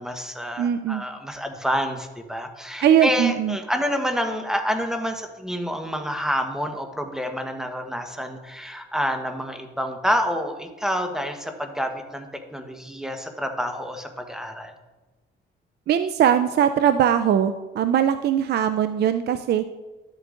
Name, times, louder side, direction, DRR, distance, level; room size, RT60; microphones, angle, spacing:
voice 1, 0.0-14.7, equal, 5° right, 5 dB, 1.1 m, -28 dB
voice 2, 0.6-1.0 2.8-3.6 15.9-19.6, right 9 dB, 55° right, 10 dB, 0.4 m, -20 dB
12.5 x 8.2 x 2.5 m, 1.1 s
cardioid pair, 90°, 20 cm